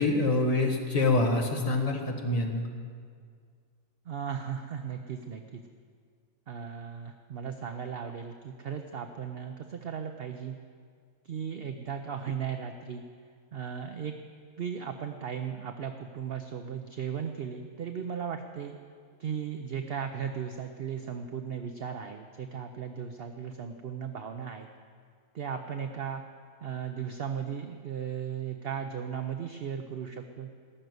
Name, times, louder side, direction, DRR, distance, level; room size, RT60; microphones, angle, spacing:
voice 1, 0.0-2.7, left 2 dB, 25° left, 2 dB, 1.5 m, -26 dB
voice 2, 4.0-5.6 6.5-10.6 11.2-13.0 13.5-14.1 14.6-18.8 19.2-24.7 25.3-26.2 26.6-30.5, right 7 dB, 50° right, 6 dB, 0.8 m, -36 dB
19.0 x 6.7 x 9.3 m, 2.1 s
omnidirectional pair, 1.4 m